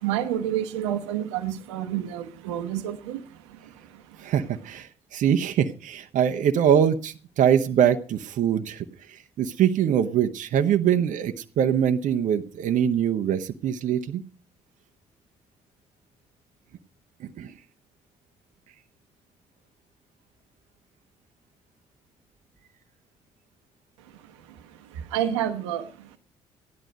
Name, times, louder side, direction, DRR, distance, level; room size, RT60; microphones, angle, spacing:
voice 1, 0.0-4.3 24.0-26.2, right 11 dB, 85° right, 9 dB, 1.1 m, -30 dB
voice 2, 4.2-14.2 17.2-17.5, right 9 dB, 60° right, 7 dB, 0.9 m, -23 dB
14.5 x 11.0 x 5.3 m, 0.39 s
hypercardioid pair, 50°, 15 cm